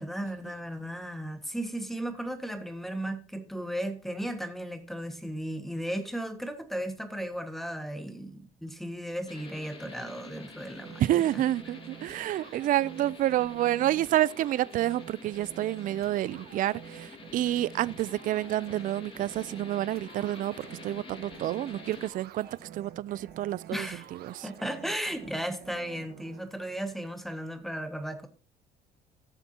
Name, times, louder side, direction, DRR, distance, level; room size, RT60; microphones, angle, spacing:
voice 1, 0.0-11.1 12.4-12.6 23.7-24.1 24.4-28.3, right 1 dB, ahead, 1.6 m, -35 dB
sound 1, 9.3-22.1, left 3 dB, 30° left, 2.1 m, -48 dB
sound 2, 10.8-26.4, right 10 dB, 70° right, 1.3 m, -48 dB
voice 2, 11.0-23.9 24.2-24.5, right 13 dB, 55° right, 0.4 m, -29 dB
16.0 x 7.0 x 2.8 m
cardioid pair, 110°, 17 cm